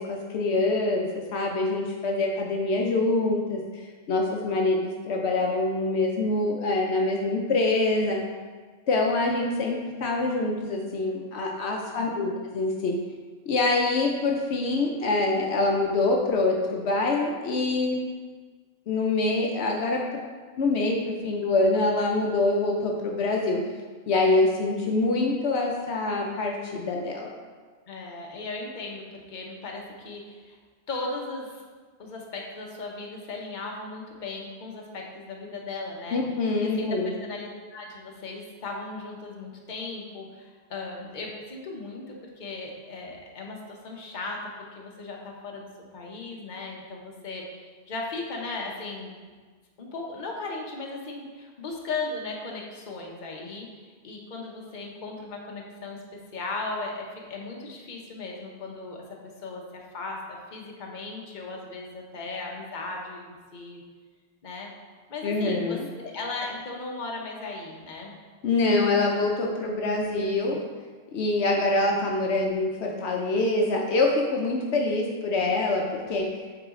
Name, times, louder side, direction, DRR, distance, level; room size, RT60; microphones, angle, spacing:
voice 1, 0.0-8.2 8.9-13.0 13.5-18.1 18.9-20.2 20.6-23.6 24.1-27.3 36.1-37.1 65.2-65.9 68.4-70.6 71.1-76.3, left 2 dB, 75° left, 0 dB, 1.0 m, -25 dB
voice 2, 11.9-12.3 27.9-30.6 30.9-31.6 32.0-36.2 36.6-44.4 44.7-49.2 49.8-56.0 56.3-63.8 64.4-64.7 65.1-68.1, left 3 dB, 45° left, 0 dB, 1.0 m, -37 dB
8.1 x 3.9 x 3.7 m, 1.5 s
omnidirectional pair, 1.2 m